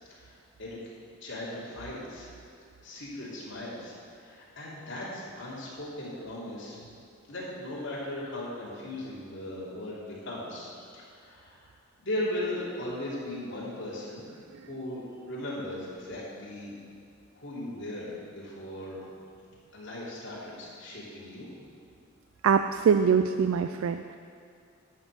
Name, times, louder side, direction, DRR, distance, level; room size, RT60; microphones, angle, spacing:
voice 1, 0.1-0.8 1.2-2.3 2.8-6.8 7.3-11.7 12.0-14.3 14.7-16.7 17.3-19.0 19.7-21.5, left 1 dB, 65° left, -7 dB, 2.9 m, -38 dB
voice 2, 22.4-24.2, right 6 dB, 80° right, 9 dB, 0.3 m, -23 dB
11.0 x 5.3 x 8.1 m, 2.4 s
head